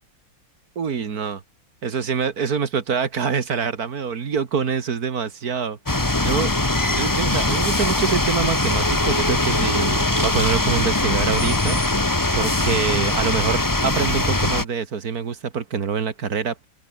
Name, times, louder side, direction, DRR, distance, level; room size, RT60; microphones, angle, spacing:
voice 1, 0.8-1.4 1.8-6.5 6.9-11.8 12.3-16.6, right 6 dB, 50° right, 2.1 m, -25 dB
sound 1, 5.9-14.6, left 2 dB, 10° left, 1.2 m, -21 dB
omnidirectional pair, 2.0 m